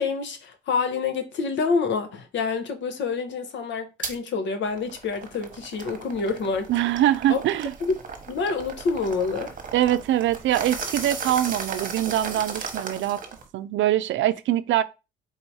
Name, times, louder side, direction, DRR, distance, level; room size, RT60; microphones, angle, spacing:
voice 1, 0.0-6.7 7.3-7.4 7.8-7.9 8.3-9.5, left 4 dB, 70° left, 1.0 m, -27 dB
sound 1, 4.0-4.2 4.7-13.5, right 5 dB, 45° right, 1.1 m, -36 dB
voice 2, 6.7-7.7 9.7-13.2 13.5-14.8, right 12 dB, 75° right, 0.4 m, -23 dB
3.8 x 2.7 x 4.6 m
cardioid pair, 90°, 20 cm